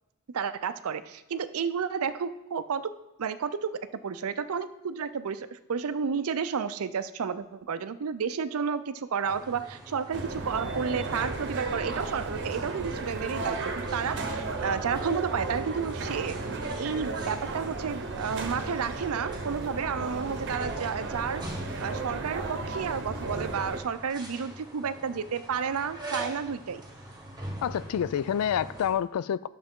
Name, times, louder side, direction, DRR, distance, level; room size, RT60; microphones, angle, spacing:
voice 1, 0.3-2.9 3.2-21.4 21.8-26.8, right 6 dB, 75° right, 0.5 m, -31 dB
sound 1, 9.2-28.9, right 1 dB, 20° right, 1.3 m, -44 dB
sound 2, 10.1-23.8, right 3 dB, 55° right, 0.9 m, -34 dB
voice 2, 27.6-29.5, left 9 dB, 75° left, 0.3 m, -28 dB
11.5 x 6.8 x 3.7 m
head